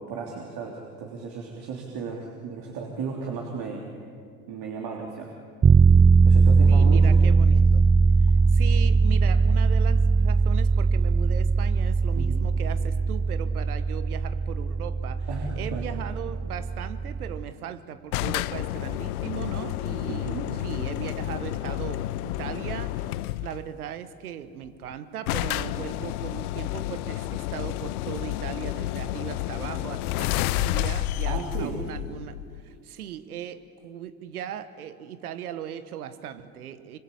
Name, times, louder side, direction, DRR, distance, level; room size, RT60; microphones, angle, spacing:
voice 1, 0.0-4.0 4.5-5.3 6.2-7.1 12.1-12.5 15.3-15.8 20.1-20.5 31.3-31.8, right 5 dB, 60° right, 0 dB, 3.4 m, -35 dB
sound 1, 5.6-17.5, right 4 dB, 20° right, 0.6 m, -20 dB
voice 2, 6.7-7.9 8.5-15.3 15.6-37.0, right 9 dB, 90° right, 13 dB, 1.3 m, -38 dB
sound 2, 18.1-23.6 24.6-24.7 24.9-25.0 25.3-32.7, left 15 dB, 80° left, 0.7 m, -30 dB
25.5 x 25.5 x 8.4 m, 2.2 s
hypercardioid pair, 65°, 43 cm